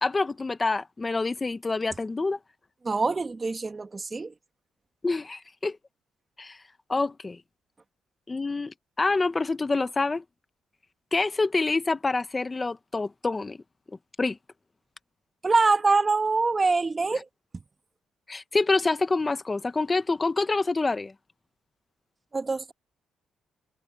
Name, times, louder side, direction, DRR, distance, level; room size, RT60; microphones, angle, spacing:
voice 1, 0.0-2.4 5.0-5.8 6.4-6.6 6.9-7.4 8.3-10.2 11.1-13.6 14.2-14.4 17.1-17.2 18.3-21.1, left 3 dB, 25° left, 1.2 m, -27 dB
voice 2, 2.8-4.3 15.4-17.2 22.3-22.7, right 3 dB, 25° right, 1.9 m, -24 dB
cardioid pair, 90°, 0 cm